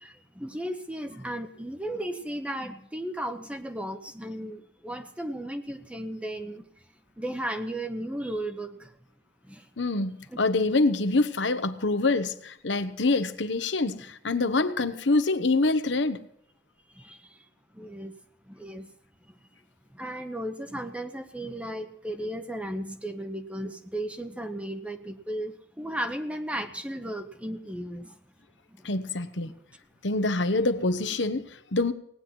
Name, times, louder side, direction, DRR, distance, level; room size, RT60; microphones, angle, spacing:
voice 1, 0.0-6.6 7.2-8.9 9.5-9.6 10.3-10.4 17.0-17.2 17.8-18.1 18.5-18.9 19.9-28.1 29.4-29.5, right 1 dB, 5° right, 0.9 m, -35 dB
voice 2, 9.8-16.3 28.8-29.5 30.0-31.9, left 3 dB, 70° left, 1.1 m, -26 dB
18.0 x 9.7 x 5.9 m
head